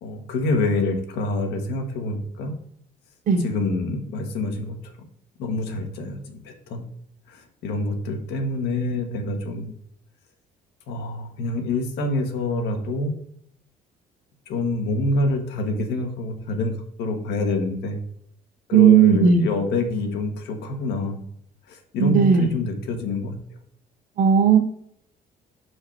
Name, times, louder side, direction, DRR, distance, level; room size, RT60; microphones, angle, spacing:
voice 1, 0.0-2.6 3.4-5.1 5.4-6.8 7.3-9.7 10.9-13.1 14.5-18.0 18.7-21.2 21.7-23.4, left 2 dB, 85° left, 5 dB, 1.4 m, -26 dB
voice 2, 18.7-19.5 22.0-22.5 24.2-24.6, right 7 dB, 55° right, 6 dB, 1.4 m, -15 dB
5.8 x 4.8 x 4.6 m, 0.69 s
cardioid pair, 110°, 17 cm